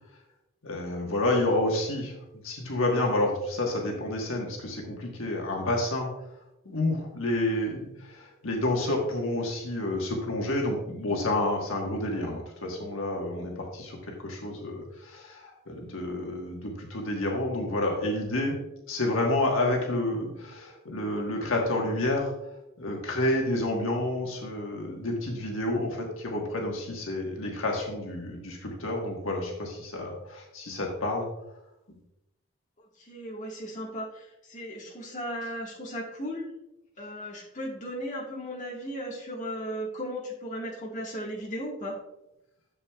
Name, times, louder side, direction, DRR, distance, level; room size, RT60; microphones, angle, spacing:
voice 1, 0.6-2.1 2.4-6.1 6.6-18.6 18.9-22.3 22.8-31.3, left 1 dB, 70° left, 0 dB, 1.4 m, -29 dB
voice 2, 32.8-36.4 37.0-42.0, equal, 35° left, -3 dB, 1.7 m, -36 dB
10.5 x 7.2 x 2.3 m, 0.90 s
head